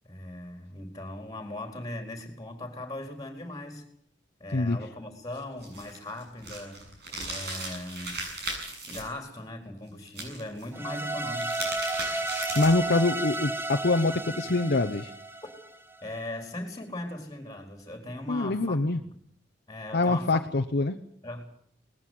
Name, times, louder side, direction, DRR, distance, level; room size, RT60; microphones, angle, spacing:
voice 1, 0.0-3.9 4.4-6.8 7.3-8.2 8.8-11.6 16.0-18.8 19.7-20.4 21.2-21.4, left 1 dB, 20° left, 5 dB, 4.4 m, -39 dB
sound 1, 5.6-9.0 10.1-10.7 11.2-12.9, right 2 dB, 60° right, 7.7 m, -37 dB
sound 2, 10.7-15.9, right 2 dB, 10° right, 1.2 m, -32 dB
voice 2, 12.2-15.1 18.3-19.0 19.9-21.0, left 2 dB, 60° left, 7 dB, 0.9 m, -25 dB
20.5 x 14.5 x 9.5 m, 0.67 s
head